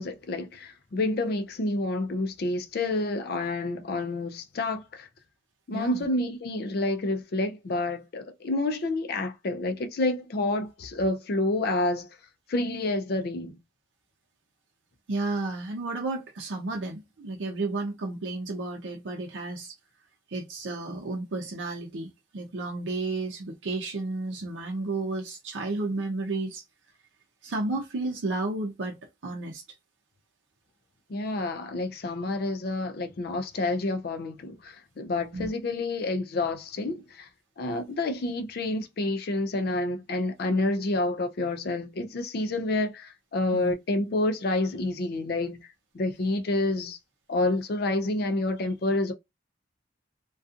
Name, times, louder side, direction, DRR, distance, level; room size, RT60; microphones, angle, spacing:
voice 1, 0.0-5.1 5.7-12.1 12.5-13.6 31.1-37.3 37.6-45.6 45.9-47.0 47.3-49.1, left 2 dB, 55° left, 0.4 m, -28 dB
voice 2, 5.7-6.0 15.1-19.7 20.3-26.6 27.4-29.0 29.2-29.6 35.3-35.5 43.5-43.7, right 2 dB, 80° right, 0.6 m, -32 dB
2.6 x 2.2 x 2.4 m
head